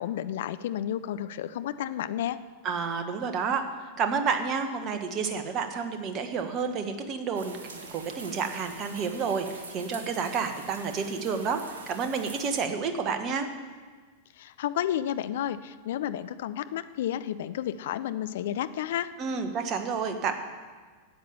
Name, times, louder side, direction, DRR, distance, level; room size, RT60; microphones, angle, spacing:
voice 1, 0.0-2.4 14.4-19.1, left 11 dB, 55° left, 13 dB, 0.5 m, -31 dB
voice 2, 2.6-3.6 4.0-13.5 19.2-20.3, right 5 dB, 35° right, 7 dB, 1.4 m, -30 dB
sound 1, 7.3-12.6, right 3 dB, 65° right, 1.5 m, -45 dB
13.0 x 8.6 x 7.0 m, 1.5 s
figure-of-eight pair, 90°, 0 cm